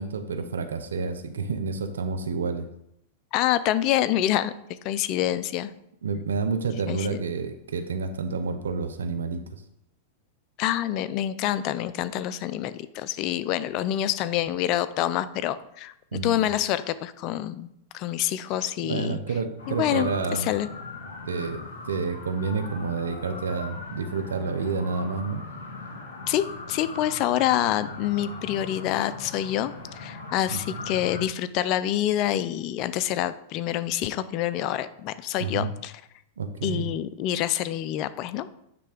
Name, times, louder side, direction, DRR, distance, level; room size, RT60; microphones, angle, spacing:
voice 1, 0.0-2.7 6.0-9.6 16.1-16.4 18.8-20.5 21.3-25.4 30.5-30.8 35.4-35.7 36.4-36.9, right 4 dB, 90° right, 9 dB, 0.7 m, -29 dB
voice 2, 3.3-4.5 4.8-5.7 6.9-7.2 10.6-15.9 16.2-17.7 17.9-19.2 19.7-20.7 26.3-35.9 36.6-38.5, left 12 dB, 45° left, 15 dB, 0.5 m, -27 dB
sound 1, 19.6-31.2, left 3 dB, 85° left, 2.0 m, -39 dB
9.3 x 3.4 x 5.1 m, 0.77 s
hypercardioid pair, 115°, 0 cm